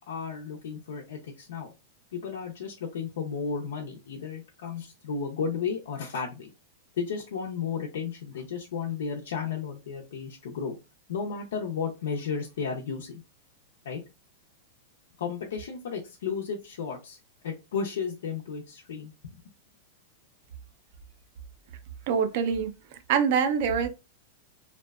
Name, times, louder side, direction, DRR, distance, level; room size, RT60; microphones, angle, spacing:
voice 1, 0.1-1.7 2.1-6.5 7.0-10.7 11.1-13.2 13.8-14.0 15.2-17.2 17.4-19.1, left 6 dB, 90° left, 0.5 m, -33 dB
voice 2, 22.1-22.7 23.1-23.9, right 6 dB, 40° right, 0.3 m, -24 dB
2.6 x 2.1 x 2.3 m
supercardioid pair, 180°, 0 cm